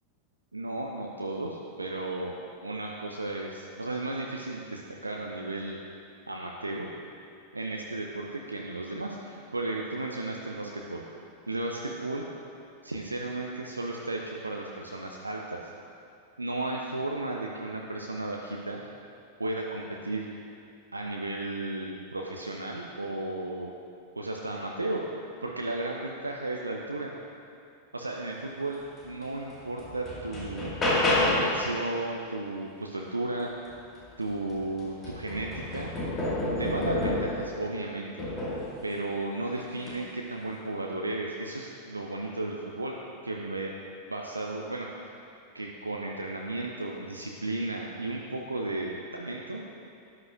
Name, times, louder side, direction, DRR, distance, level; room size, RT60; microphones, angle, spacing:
voice 1, 0.5-2.3 2.6-5.8 6.3-6.9 7.5-11.0 11.5-12.3 12.8-15.7 16.4-18.8 19.4-20.3 20.9-23.7 24.2-27.1 27.9-30.7 31.1-33.5 34.2-35.9 36.6-38.1 38.8-42.9 43.2-43.7 44.1-45.1 45.5-49.6, right 2 dB, 80° right, 0 dB, 0.6 m, -34 dB
sound 1, 29.2-29.3 29.8-31.6 34.0-34.1 34.5-37.5 38.2-38.7 39.8-40.0, left 1 dB, 25° left, 2.0 m, -29 dB
12.5 x 9.6 x 2.6 m, 2.6 s
figure-of-eight pair, 90°, 0 cm